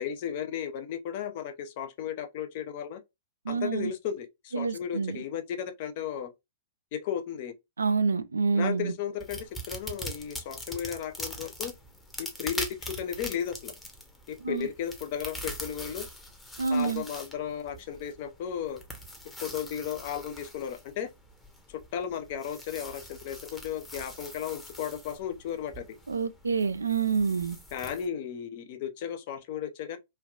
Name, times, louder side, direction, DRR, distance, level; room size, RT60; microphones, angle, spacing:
voice 1, 0.0-3.0 3.5-6.3 6.9-7.5 8.5-11.7 12.2-13.7 14.3-16.1 16.7-18.8 19.4-21.1 21.7-25.9 27.7-30.0, left 9 dB, 50° left, 0.6 m, -35 dB
voice 2, 3.5-3.9 4.5-5.2 7.8-8.9 14.4-14.7 16.6-17.0 26.1-27.6, right 5 dB, 85° right, 0.3 m, -27 dB
sound 1, 9.2-28.1, left 1 dB, 10° left, 0.8 m, -43 dB
3.3 x 2.3 x 2.2 m
figure-of-eight pair, 110°, 0 cm